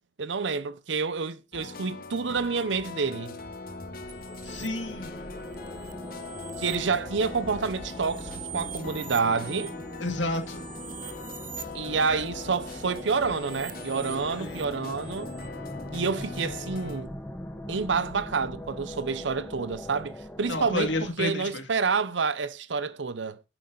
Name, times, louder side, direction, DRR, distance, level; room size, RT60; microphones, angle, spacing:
voice 1, 0.2-3.4 6.6-9.7 11.7-15.3 15.9-17.1 17.7-20.9 21.2-23.4, right 5 dB, 75° right, 0.7 m, -28 dB
sound 1, 1.5-17.0, left 3 dB, 50° left, 1.1 m, -41 dB
sound 2, 3.1-21.1, left 1 dB, 10° left, 1.2 m, -42 dB
sound 3, 4.1-4.7 5.4-6.8 7.3-11.8 12.7-15.5, right 13 dB, 45° right, 0.9 m, -45 dB
voice 2, 4.4-5.3 10.0-10.7 14.4-14.7 20.5-21.7, left 2 dB, 80° left, 2.1 m, -31 dB
9.1 x 8.6 x 3.9 m
head